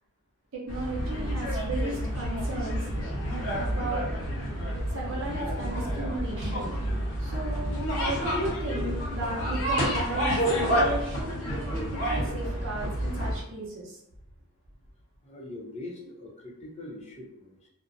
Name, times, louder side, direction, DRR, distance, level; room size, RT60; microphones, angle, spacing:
voice 1, 0.5-2.9 3.6-4.0 4.9-6.7 7.2-14.0 16.0-16.1, right 2 dB, 60° right, -4 dB, 0.6 m, -35 dB
sound 1, 0.7-13.4, equal, 80° left, 1.0 m, -29 dB
voice 2, 15.2-17.7, left 2 dB, 30° left, -4 dB, 0.6 m, -42 dB
2.4 x 2.1 x 2.5 m, 0.84 s
head